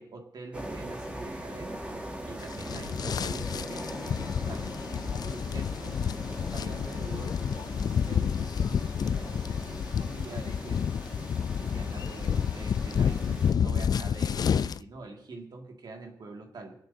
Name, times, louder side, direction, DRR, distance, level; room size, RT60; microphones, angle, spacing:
voice 1, 0.0-1.9 2.3-4.8 5.1-6.1 6.5-11.0 11.6-16.8, right 3 dB, 75° right, 2 dB, 2.0 m, -45 dB
sound 1, 0.5-13.5, right 1 dB, 15° right, 1.8 m, -41 dB
sound 2, 2.4-14.8, left 7 dB, 65° left, 0.3 m, -30 dB
26.0 x 8.9 x 2.7 m, 0.71 s
cardioid pair, 65°, 7 cm